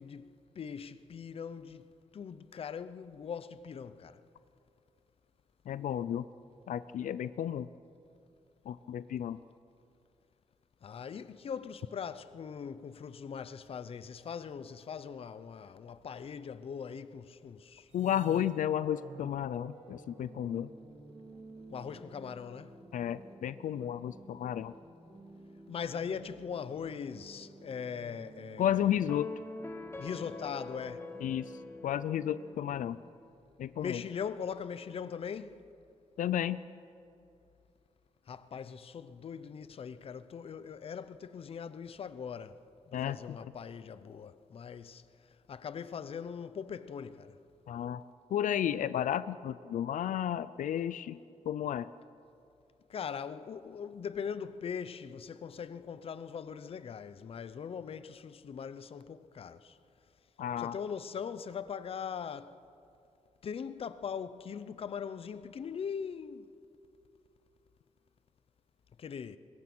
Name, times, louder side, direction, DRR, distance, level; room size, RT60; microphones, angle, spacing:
voice 1, 0.0-1.9 2.1-4.2 10.8-17.9 21.7-22.8 25.7-28.7 30.0-31.1 33.8-35.6 38.3-42.6 42.9-45.0 45.5-47.3 52.9-59.8 60.6-62.6 63.4-66.5 69.0-69.4, left 7 dB, 45° left, 0.7 m, -41 dB
voice 2, 5.7-6.3 6.7-7.7 8.7-9.4 17.9-20.7 22.9-24.7 28.6-29.3 31.2-33.0 33.6-34.0 36.2-36.6 42.9-43.5 47.7-48.0 48.3-51.2 51.5-51.9 60.4-60.8, left 10 dB, 85° left, 0.5 m, -32 dB
sound 1, 17.9-21.0, right 6 dB, 60° right, 1.8 m, -53 dB
sound 2, 19.9-33.1, right 2 dB, 15° right, 1.9 m, -53 dB
sound 3, 29.1-32.6, left 3 dB, 20° left, 1.2 m, -45 dB
24.5 x 21.5 x 6.1 m
wide cardioid pair, 175°, 13 cm